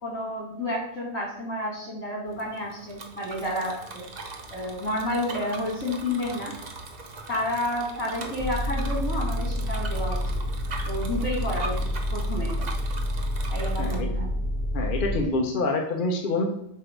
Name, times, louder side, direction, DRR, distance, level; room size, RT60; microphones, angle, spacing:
voice 1, 0.0-4.0 4.5-6.5 7.3-10.2 10.9-12.5 13.5-14.3, left 1 dB, 70° left, -4 dB, 2.9 m, -30 dB
Bicycle, 2.3-14.0, right 2 dB, 40° right, 0.6 m, -40 dB
sound 1, 8.4-15.2, left 1 dB, 5° right, 0.7 m, -28 dB
voice 2, 14.7-16.4, left 2 dB, 45° left, 1 dB, 0.9 m, -26 dB
7.8 x 2.7 x 4.5 m, 0.74 s
omnidirectional pair, 1.4 m